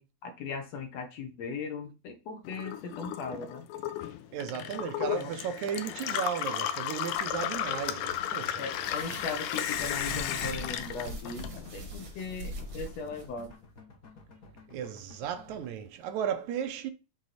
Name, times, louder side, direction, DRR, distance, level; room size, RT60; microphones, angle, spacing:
voice 1, 0.0-3.6 5.1-5.3 8.6-13.5, left 4 dB, 70° left, 1.8 m, -38 dB
Gurgling / Water tap faucet / Sink (filling or washing), 2.4-12.0 12.3-13.2, left 11 dB, 85° left, 2.2 m, -34 dB
voice 2, 4.3-8.6 14.7-16.9, right 8 dB, 75° right, 2.0 m, -35 dB
sound 1, 7.2-15.6, left 4 dB, 45° left, 1.1 m, -52 dB
sound 2, 8.7-13.5, right 2 dB, 50° right, 1.5 m, -42 dB
6.4 x 3.9 x 4.1 m
omnidirectional pair, 3.6 m